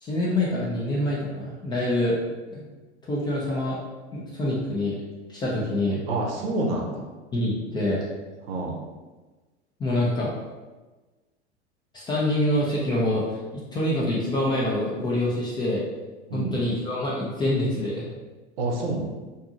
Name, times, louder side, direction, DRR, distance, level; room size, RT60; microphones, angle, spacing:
voice 1, 0.0-2.2 2.5-2.7 3.1-3.8 4.1-5.0 5.3-6.0 7.3-8.0 9.8-10.3 11.9-15.8 16.3-18.1, left 1 dB, 15° left, -5 dB, 0.4 m, -26 dB
voice 2, 6.1-7.1 8.4-8.8 16.3-16.6 18.6-19.1, right 2 dB, 55° right, 1 dB, 0.7 m, -28 dB
2.7 x 2.7 x 2.4 m, 1.2 s
figure-of-eight pair, 85°, 34 cm